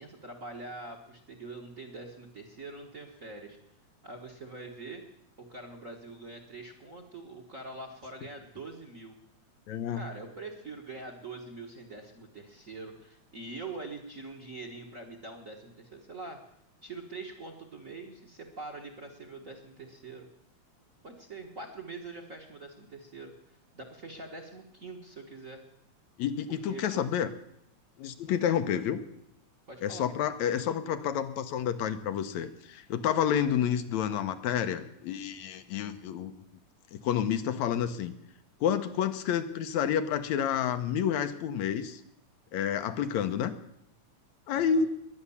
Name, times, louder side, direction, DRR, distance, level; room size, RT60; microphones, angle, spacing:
voice 1, 0.0-3.6 4.0-5.0 5.4-9.2 9.9-16.4 16.8-20.3 21.0-25.6 26.5-27.0 29.7-30.1 44.5-44.9, right 3 dB, 35° right, 5 dB, 1.4 m, -44 dB
voice 2, 9.7-10.0 26.2-27.3 28.0-29.0 29.8-36.3 36.9-38.1 38.6-42.0 42.5-43.5 44.5-44.9, left 8 dB, 80° left, 9 dB, 2.2 m, -29 dB
21.5 x 9.5 x 7.1 m, 0.76 s
omnidirectional pair, 3.3 m